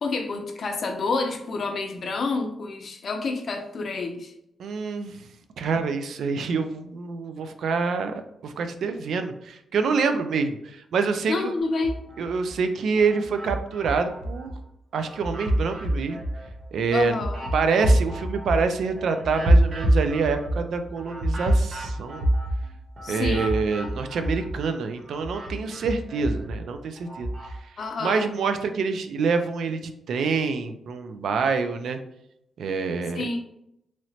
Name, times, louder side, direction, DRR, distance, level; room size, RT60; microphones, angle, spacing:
voice 1, 0.0-4.3 11.3-12.0 16.9-17.4 23.0-23.5 27.8-28.2 33.1-33.4, left 3 dB, 50° left, 4 dB, 0.5 m, -28 dB
voice 2, 4.6-5.2 5.6-11.5 12.2-14.5 14.9-16.2 16.7-17.2 17.5-22.3 23.1-27.7 28.0-32.0 32.6-33.3, right 5 dB, 75° right, 8 dB, 0.4 m, -26 dB
sound 1, 11.7-12.5 13.0-14.6 15.0-24.7 25.0-27.5, right 1 dB, 40° right, 0.8 m, -26 dB
3.1 x 2.9 x 2.7 m, 0.79 s
cardioid pair, 120°, 0 cm